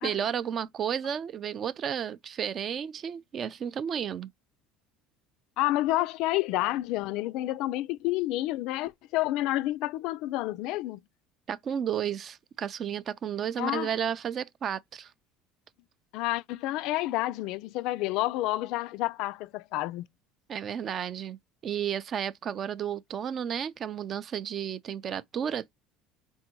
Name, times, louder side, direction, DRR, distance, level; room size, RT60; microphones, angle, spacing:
voice 1, 0.0-4.3 11.5-15.1 20.5-21.4 21.6-25.7, right 8 dB, 40° right, 0.4 m, -32 dB
voice 2, 5.6-11.0 13.6-13.9 16.1-20.1, left 16 dB, 70° left, 0.3 m, -29 dB
3.6 x 2.6 x 4.5 m
supercardioid pair, 105°, 0 cm